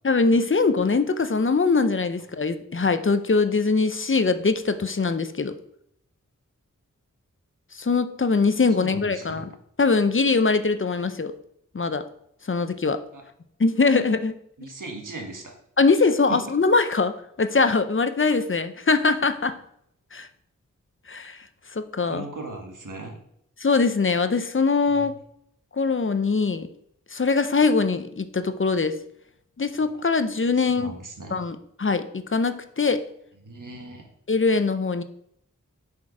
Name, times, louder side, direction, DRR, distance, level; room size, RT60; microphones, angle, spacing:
voice 1, 0.0-5.5 7.8-9.4 9.8-11.3 11.7-12.0 12.5-13.0 13.6-14.4 15.8-19.6 20.1-20.3 21.1-21.4 21.7-22.2 23.6-25.1 25.7-26.7 27.1-29.0 29.6-30.9 31.3-33.0 34.3-35.0, left 4 dB, 40° left, 10 dB, 0.6 m, -22 dB
voice 2, 8.8-9.5 13.1-13.2 14.6-15.5 16.3-16.4 22.1-23.2 25.0-25.1 29.8-29.9 30.7-31.4 33.4-34.1, right 2 dB, 80° right, 1 dB, 1.3 m, -38 dB
7.2 x 4.5 x 4.8 m, 0.72 s
wide cardioid pair, 55°, 31 cm